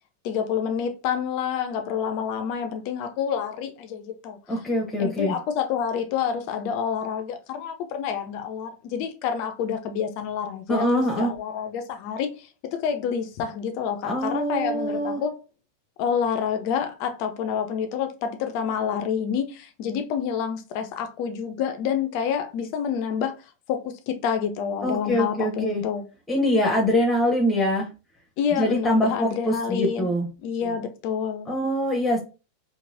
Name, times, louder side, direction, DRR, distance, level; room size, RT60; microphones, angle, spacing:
voice 1, 0.2-4.4 5.0-10.9 11.2-15.4 16.0-23.4 23.7-26.0 28.4-30.1 30.4-31.5, left 7 dB, 45° left, 0.4 m, -28 dB
voice 2, 4.5-5.3 10.7-11.3 14.0-15.2 24.8-25.8 26.3-27.9 28.6-30.3 31.5-32.2, equal, 10° left, 0.7 m, -24 dB
3.0 x 2.5 x 2.5 m
figure-of-eight pair, 90°, 0 cm